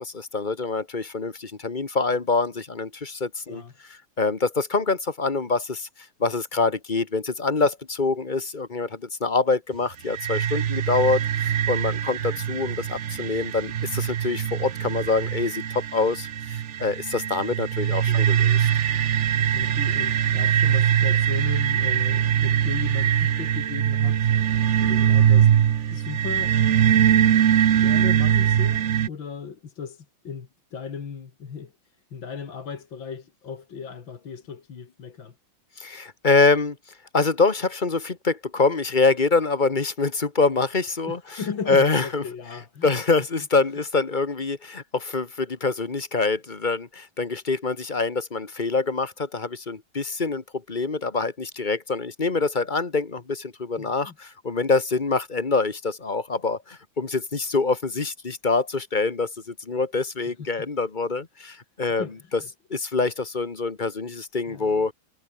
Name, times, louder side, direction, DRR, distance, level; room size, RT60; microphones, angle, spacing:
voice 1, 0.0-3.6 4.2-5.9 6.2-18.7 35.8-36.8 37.1-41.2 41.7-42.2 42.8-62.1 62.3-62.4 62.7-64.9, left 3 dB, 25° left, 1.5 m, -25 dB
sound 1, 10.1-29.1, right 9 dB, 65° right, 0.7 m, -22 dB
voice 2, 17.9-18.3 19.5-24.3 24.8-25.5 25.9-26.6 27.8-35.3 41.1-42.9 53.8-54.2 60.4-60.6 62.0-62.5 64.5-64.9, left 6 dB, 65° left, 2.9 m, -37 dB
omnidirectional pair, 2.3 m